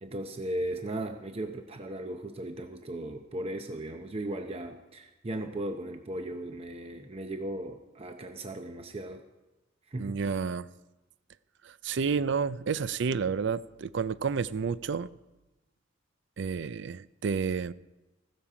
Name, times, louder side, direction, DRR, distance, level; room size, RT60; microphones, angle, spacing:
voice 1, 0.0-9.2 9.9-10.2, right 1 dB, 30° right, 0.7 m, -37 dB
voice 2, 10.0-10.7 11.6-15.1 16.4-17.7, right 5 dB, 70° right, 0.5 m, -30 dB
15.0 x 13.0 x 5.0 m
head